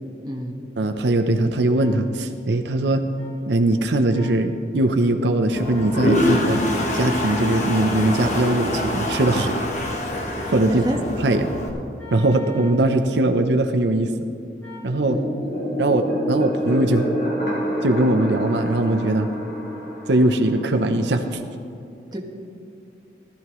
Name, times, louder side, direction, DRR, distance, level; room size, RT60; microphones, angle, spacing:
voice 1, 0.2-0.7 10.4-11.0 15.0-15.3 22.1-22.2, equal, 20° right, 0 dB, 1.2 m, -30 dB
voice 2, 0.8-3.0 3.5-6.6 6.9-9.5 10.5-10.8 11.2-11.5 12.1-14.1 14.8-15.2 15.8-17.1 17.8-19.3 20.1-21.4, right 2 dB, 75° right, 6 dB, 0.7 m, -20 dB
sound 1, 1.7-1.9 3.2-3.3 4.1-4.4 5.7-6.0 7.6-8.2 10.3-10.7 12.0-12.8 14.6-14.9, left 2 dB, 10° left, 2.7 m, -43 dB
Toilet flush, 5.5-11.7, left 1 dB, 40° left, 1.4 m, -24 dB
sound 2, 14.8-21.3, equal, 60° left, 3.7 m, -28 dB
17.5 x 13.0 x 3.1 m, 2.6 s
head